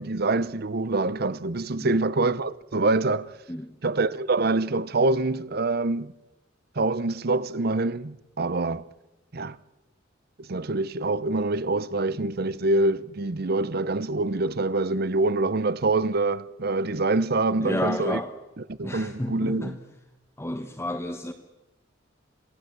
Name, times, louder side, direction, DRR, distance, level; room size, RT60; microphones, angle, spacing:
voice 1, 0.0-3.3 3.8-6.1 6.8-8.9 9.3-9.6 10.4-18.2 18.7-19.7, right 2 dB, 55° right, 0.8 m, -25 dB
voice 2, 17.6-18.3 18.8-19.8 20.4-21.3, left 1 dB, 15° left, 1.3 m, -31 dB
27.5 x 17.0 x 7.9 m
head